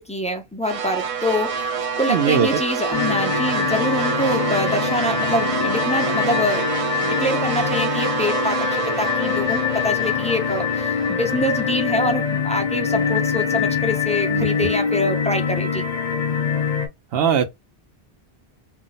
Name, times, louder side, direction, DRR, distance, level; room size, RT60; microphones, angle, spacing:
voice 1, 0.0-1.7 2.0-6.7 7.0-15.9, left 1 dB, 10° left, 0.3 m, -25 dB
sound 1, 0.6-12.9, right 5 dB, 45° right, 0.5 m, -27 dB
voice 2, 2.1-2.5 14.3-14.5 17.1-17.4, right 7 dB, 70° right, 0.9 m, -19 dB
sound 2, 2.9-16.9, left 7 dB, 50° left, 0.7 m, -24 dB
2.6 x 2.0 x 3.8 m
omnidirectional pair, 1.0 m